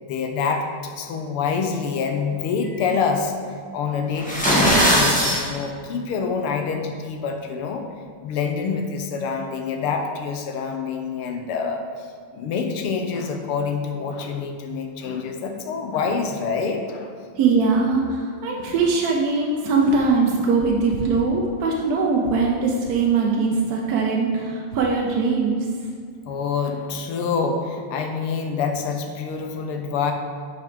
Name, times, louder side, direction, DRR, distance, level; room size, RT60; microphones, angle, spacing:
voice 1, 0.0-3.4 3.7-7.9 8.2-17.1 26.3-30.1, left 5 dB, 85° left, 4 dB, 1.7 m, -26 dB
sound 1, 4.2-5.4, equal, 5° left, 1.5 m, -18 dB
voice 2, 17.4-25.7, right 4 dB, 65° right, -1 dB, 1.0 m, -21 dB
8.6 x 5.1 x 5.0 m, 2.2 s
omnidirectional pair, 2.3 m